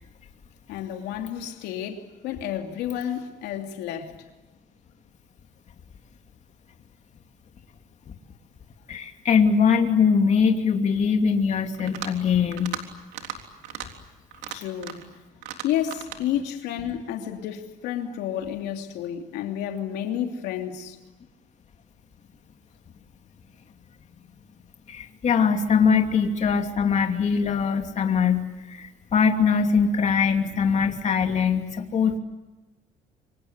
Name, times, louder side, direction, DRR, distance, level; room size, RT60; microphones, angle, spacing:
voice 1, 0.7-4.1 14.5-15.0 15.6-21.0, left 10 dB, 90° left, 3.0 m, -30 dB
voice 2, 8.9-12.8 24.9-32.2, left 6 dB, 45° left, 2.8 m, -22 dB
sound 1, 11.7-12.2 12.5-12.8 13.1-13.4 13.6-13.9 14.3-15.1 15.4-16.2, right 10 dB, 90° right, 3.6 m, -36 dB
28.0 x 25.5 x 8.2 m
cardioid pair, 110°, 17 cm